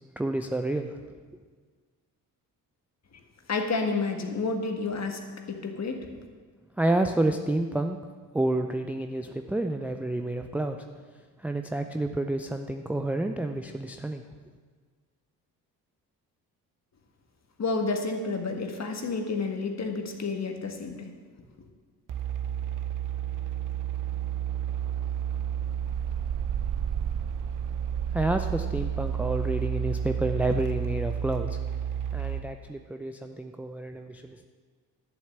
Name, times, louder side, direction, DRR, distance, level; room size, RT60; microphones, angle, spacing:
voice 1, 0.2-1.0 6.8-8.0 8.3-10.8 11.4-14.2 28.1-31.6 32.1-34.5, right 2 dB, 5° right, 6 dB, 0.5 m, -29 dB
voice 2, 3.5-5.2 5.5-6.1 17.6-21.1, left 4 dB, 35° left, 4 dB, 1.7 m, -30 dB
sound 1, 22.1-32.4, right 9 dB, 40° right, 0.9 m, -31 dB
11.5 x 7.2 x 7.2 m, 1.6 s
figure-of-eight pair, 45°, 48 cm